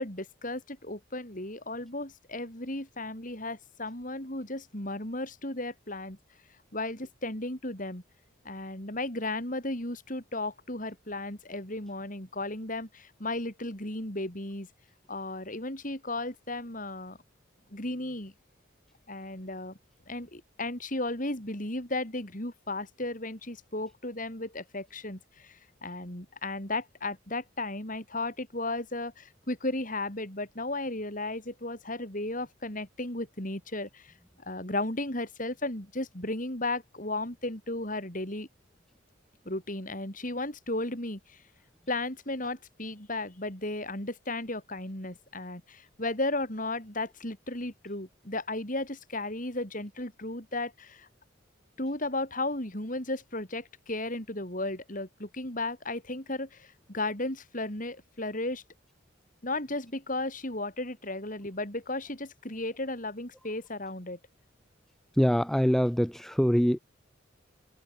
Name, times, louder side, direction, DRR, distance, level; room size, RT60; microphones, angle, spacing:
voice 1, 0.0-6.2 6.7-8.0 8.4-14.7 15.1-17.2 17.7-18.3 19.1-19.8 20.1-34.1 34.4-38.5 39.4-41.4 41.9-51.1 51.8-58.6 59.4-64.2, left 2 dB, 40° left, 4.9 m, -35 dB
voice 2, 65.2-66.8, equal, ahead, 0.5 m, -24 dB
head